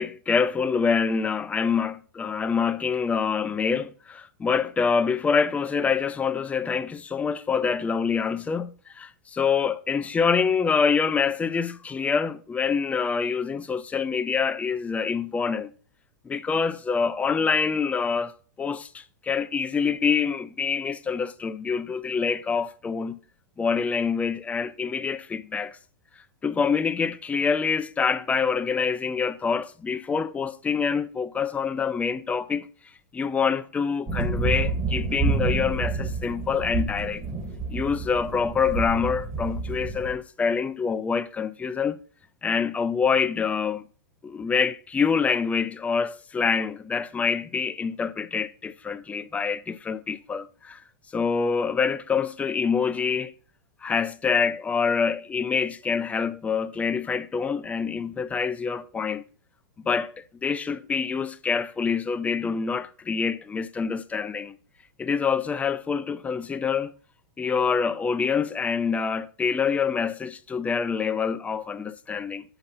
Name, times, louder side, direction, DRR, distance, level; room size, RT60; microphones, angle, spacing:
voice 1, 0.0-15.7 16.3-23.2 23.6-25.8 26.4-32.7 33.1-37.2 37.7-42.0 42.4-43.8 44.2-50.8 51.1-53.3 53.8-59.2 59.9-64.6 65.0-66.9 67.4-72.4, left 5 dB, 15° left, 0.4 m, -26 dB
sound 1, 34.1-40.1, right 3 dB, 20° right, 2.1 m, -28 dB
7.8 x 5.5 x 3.8 m
hypercardioid pair, 120°, 10 cm